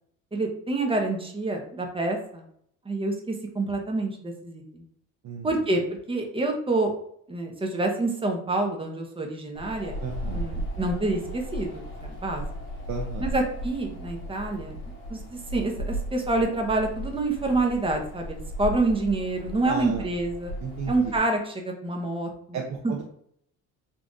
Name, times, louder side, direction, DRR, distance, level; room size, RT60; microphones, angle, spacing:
voice 1, 0.3-2.4 2.9-4.8 5.4-6.9 7.3-9.9 10.3-12.4 13.2-14.8 15.1-20.5 20.9-22.3 22.8-22.9, right 2 dB, 15° right, 2 dB, 0.8 m, -27 dB
voice 2, 5.2-5.7 10.0-10.5 12.9-13.3 19.6-20.1 20.6-21.1 22.5-23.0, right 5 dB, 55° right, 0 dB, 0.7 m, -34 dB
Wind, 9.6-21.2, equal, 75° left, 1.5 m, -36 dB
4.0 x 2.5 x 3.5 m, 0.68 s
cardioid pair, 125°, 33 cm